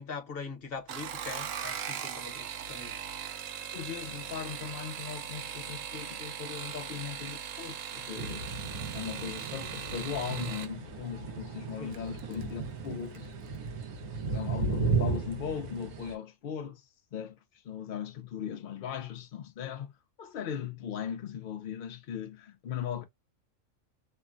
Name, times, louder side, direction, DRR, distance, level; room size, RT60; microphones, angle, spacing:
voice 1, 0.0-3.1 11.8-12.0, left 5 dB, 45° left, 1.0 m, -42 dB
sound 1, 0.8-10.7 11.9-12.4 12.8-13.3 13.5-13.6, right 8 dB, 70° right, 1.0 m, -39 dB
voice 2, 3.7-8.5 8.9-13.3 14.2-19.9 20.2-23.0, left 8 dB, 65° left, 0.5 m, -38 dB
sound 2, 8.2-16.1, right 4 dB, 85° right, 1.2 m, -35 dB
3.1 x 2.1 x 2.4 m
omnidirectional pair, 1.5 m